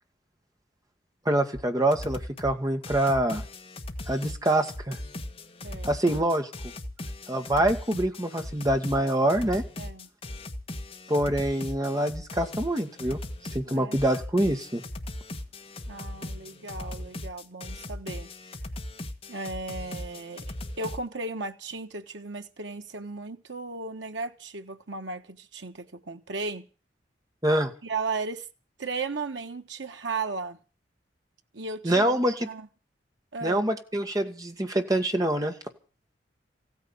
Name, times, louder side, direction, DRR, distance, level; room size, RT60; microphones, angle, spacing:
voice 1, 1.2-3.4 4.1-5.0 5.8-6.5 7.3-9.6 11.1-13.2 13.5-14.8 27.4-27.7 31.8-32.5 33.4-35.5, right 1 dB, 20° right, 1.8 m, -25 dB
sound 1, 1.5-1.6 1.9-2.5 2.8-21.0, left 1 dB, 35° left, 1.6 m, -38 dB
voice 2, 5.6-5.9 9.8-10.1 13.7-14.0 15.9-18.3 19.3-26.7 27.8-28.5 28.8-30.6 31.5-32.1 32.4-32.7 33.3-33.7, right 3 dB, 85° right, 1.3 m, -35 dB
16.0 x 9.6 x 8.7 m
head